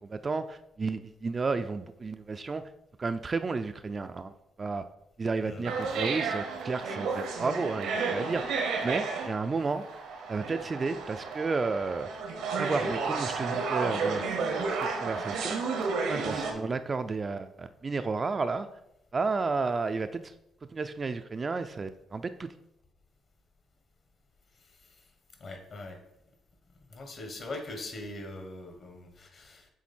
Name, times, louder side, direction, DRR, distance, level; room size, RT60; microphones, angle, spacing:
voice 1, 0.0-2.7 3.0-4.3 4.6-4.8 5.2-10.0 10.3-12.1 12.6-14.3 14.8-15.6 16.1-18.7 19.1-20.3 20.6-22.5, right 4 dB, 35° right, 10 dB, 0.3 m, -32 dB
voice 2, 5.4-5.8 24.8-24.9 25.4-26.0 26.9-29.7, left 2 dB, 50° left, 4 dB, 1.4 m, -41 dB
sound 1, 5.6-16.5, right 4 dB, 85° right, 1.0 m, -32 dB
7.3 x 3.2 x 4.3 m, 0.83 s
cardioid pair, 90°, 0 cm